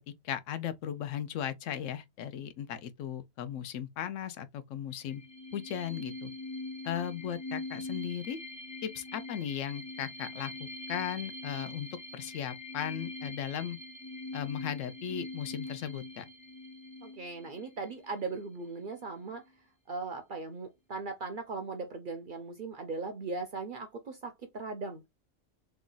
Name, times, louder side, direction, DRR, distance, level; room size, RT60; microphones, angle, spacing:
voice 1, 0.2-5.2 5.5-6.3 6.8-8.4 8.8-11.9 12.1-13.8 14.3-16.2, left 9 dB, 75° left, 1.0 m, -37 dB
sound 1, 5.0-18.4, left 2 dB, 10° left, 0.3 m, -43 dB
voice 2, 17.0-19.4 19.9-25.1, right 4 dB, 60° right, 0.6 m, -38 dB
3.1 x 2.3 x 3.8 m
omnidirectional pair, 1.3 m